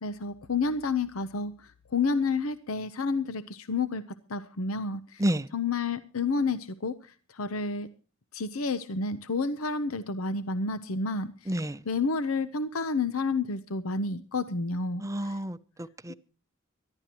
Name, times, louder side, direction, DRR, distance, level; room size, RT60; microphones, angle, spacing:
voice 1, 0.0-4.0 4.3-5.2 5.5-7.9 8.3-15.4, left 4 dB, 85° left, 0.8 m, -30 dB
voice 2, 11.5-11.8 15.0-16.1, right 1 dB, 15° right, 0.6 m, -30 dB
24.0 x 11.5 x 3.0 m
head